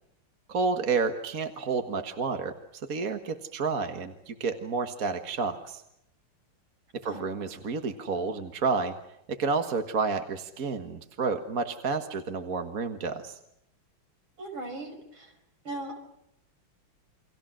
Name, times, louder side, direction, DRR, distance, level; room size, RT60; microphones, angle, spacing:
voice 1, 0.5-2.5 2.9-5.8 6.9-8.9 9.3-13.4, right 4 dB, 45° right, 6 dB, 1.8 m, -30 dB
voice 2, 14.4-15.3 15.6-16.0, right 2 dB, 65° right, 4 dB, 6.3 m, -38 dB
29.5 x 25.0 x 6.4 m, 0.79 s
omnidirectional pair, 2.4 m